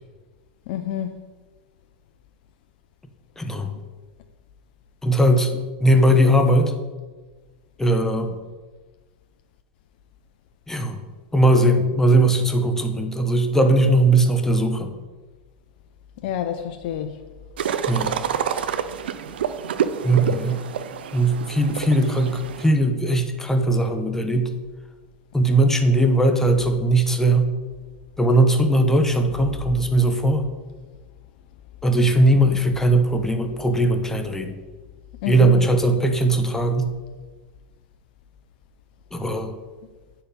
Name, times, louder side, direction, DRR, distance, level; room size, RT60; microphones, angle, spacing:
voice 1, 0.7-1.2 16.2-17.2 35.2-35.7, left 10 dB, 60° left, 0.5 m, -28 dB
voice 2, 3.4-3.7 5.0-6.7 7.8-8.4 10.7-11.0 11.3-14.9 17.9-18.2 20.0-20.6 21.1-24.5 25.3-27.5 28.2-30.5 31.8-34.5 35.3-36.9 39.1-39.5, right 1 dB, 10° left, 0.8 m, -19 dB
sound 1, 17.6-22.7, right 8 dB, 85° right, 0.5 m, -28 dB
9.0 x 4.5 x 5.1 m
hypercardioid pair, 110°, 5 cm